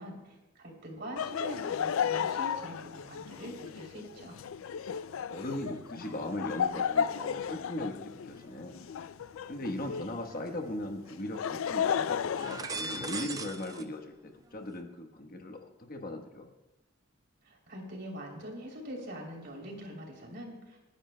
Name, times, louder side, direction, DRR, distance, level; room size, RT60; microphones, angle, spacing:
voice 1, 0.0-4.4 17.4-20.8, equal, 55° right, 0 dB, 3.2 m, -43 dB
Laughter, 1.2-10.2 11.1-13.4, left 7 dB, 75° left, 0.4 m, -34 dB
sound 1, 2.8-3.7 4.1-9.7 10.3-11.2 11.5-11.8 12.2-13.9 14.1-14.8, right 3 dB, 20° right, 0.5 m, -45 dB
voice 2, 5.3-8.8 9.5-16.5, left 1 dB, 45° left, 4 dB, 1.2 m, -38 dB
29.5 x 10.5 x 2.2 m, 1.0 s
head